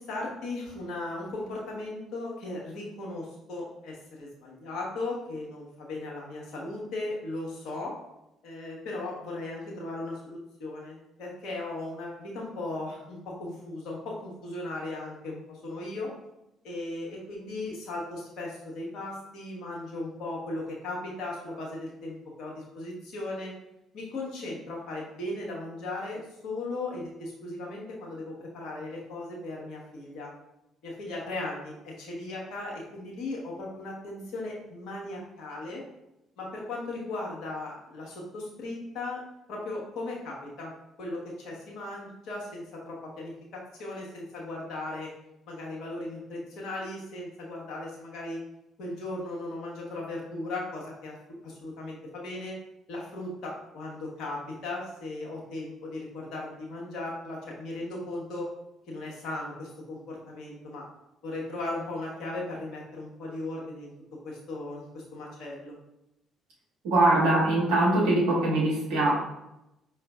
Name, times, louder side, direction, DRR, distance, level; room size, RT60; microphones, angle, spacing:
voice 1, 0.0-7.9 8.4-16.1 16.6-23.5 23.9-30.3 30.8-35.8 36.4-39.2 39.5-40.7 41.0-45.1 45.5-48.4 48.8-51.2 51.4-52.6 52.9-58.5 58.9-60.8 61.2-63.9 64.2-65.7, left 2 dB, 60° left, -3 dB, 1.2 m, -37 dB
voice 2, 66.8-69.1, right 2 dB, 70° right, -5 dB, 1.4 m, -22 dB
5.0 x 3.1 x 2.4 m, 0.88 s
figure-of-eight pair, 45°, 0 cm